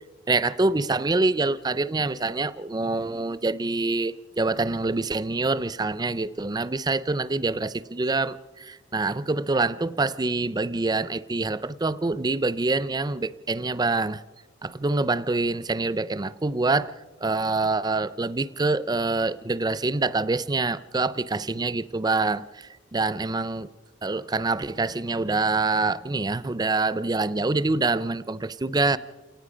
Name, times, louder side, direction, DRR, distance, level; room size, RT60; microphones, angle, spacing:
voice 1, 0.3-14.2 14.6-16.9 17.2-23.7 24.0-29.0, right 3 dB, 20° right, 0.5 m, -26 dB
28.5 x 18.5 x 5.1 m
head